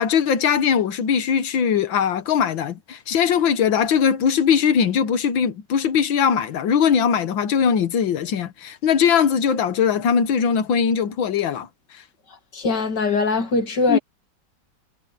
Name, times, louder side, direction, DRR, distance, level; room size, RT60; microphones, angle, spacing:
voice 1, 0.0-11.7 11.9-12.0 13.9-14.0, left 7 dB, 80° left, 1.9 m, -20 dB
voice 2, 12.5-14.0, left 3 dB, 60° left, 3.0 m, -21 dB
omnidirectional pair, 2.1 m